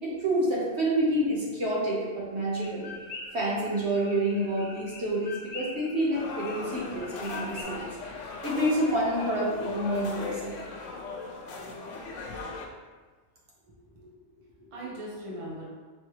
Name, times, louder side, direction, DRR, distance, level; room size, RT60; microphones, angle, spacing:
voice 1, 0.0-2.9 3.3-7.9 8.4-10.5, right 1 dB, 65° right, -5 dB, 1.3 m, -28 dB
sound 1, 2.5-7.6, left 3 dB, 65° left, 0.9 m, -44 dB
sound 2, 6.1-12.7, left 3 dB, 90° left, 1.0 m, -38 dB
voice 2, 13.6-15.6, right 1 dB, 30° right, -6 dB, 0.9 m, -41 dB
4.5 x 3.2 x 3.1 m, 1.4 s
omnidirectional pair, 1.2 m